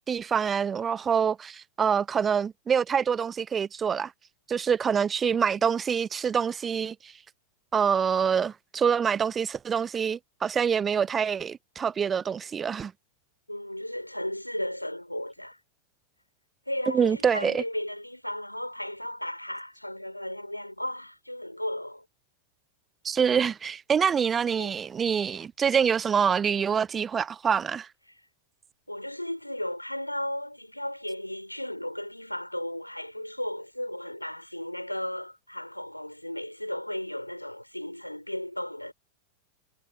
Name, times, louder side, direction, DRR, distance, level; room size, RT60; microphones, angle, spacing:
voice 1, 0.1-4.1 4.5-7.1 7.7-12.9 16.9-17.6 23.0-27.9, right 7 dB, 20° right, 0.7 m, -26 dB
voice 2, 13.5-15.6 16.7-22.1 24.6-24.7 28.1-28.2 28.9-38.9, left 1 dB, 90° left, 5.1 m, -35 dB
figure-of-eight pair, 90°, 0 cm